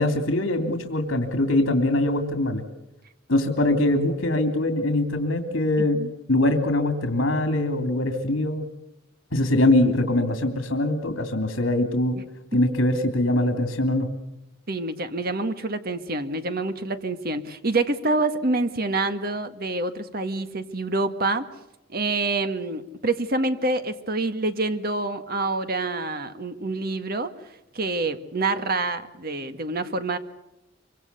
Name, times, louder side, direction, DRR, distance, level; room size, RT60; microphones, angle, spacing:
voice 1, 0.0-2.6 3.3-6.0 6.3-8.7 9.3-12.2 12.5-14.1, left 1 dB, 75° left, 6 dB, 3.0 m, -22 dB
voice 2, 5.8-6.1 14.7-21.4 21.9-27.3 27.7-30.2, right 2 dB, 50° right, 9 dB, 1.8 m, -27 dB
25.5 x 24.5 x 6.9 m, 0.91 s
head